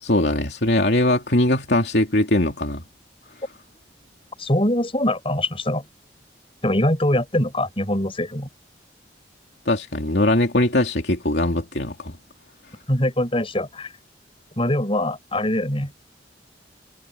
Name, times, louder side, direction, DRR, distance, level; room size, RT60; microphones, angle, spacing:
voice 1, 0.0-2.8 9.7-12.2, left 1 dB, 65° left, 3.1 m, -21 dB
voice 2, 4.4-5.8 6.6-8.5 12.9-13.9 14.6-15.9, left 1 dB, 30° left, 6.2 m, -23 dB
head